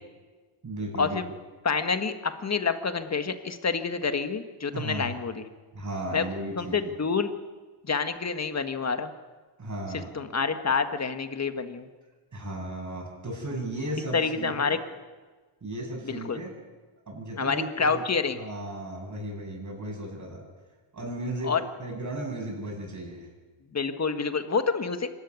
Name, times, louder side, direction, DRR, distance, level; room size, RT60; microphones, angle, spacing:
voice 1, 0.6-1.2 4.7-5.1 5.7-6.9 9.6-10.1 12.3-14.8 15.6-16.5 17.1-18.0 18.4-20.4 20.9-23.3, right 1 dB, 35° right, 0 dB, 7.9 m, -35 dB
voice 2, 1.6-5.4 6.1-6.3 6.6-7.3 7.8-9.1 9.9-11.9 14.1-14.8 16.0-16.4 17.4-18.4 21.4-21.6 23.7-25.1, left 5 dB, 30° left, 8 dB, 1.6 m, -28 dB
25.0 x 13.5 x 9.6 m, 1.4 s
cardioid pair, 105°, 49 cm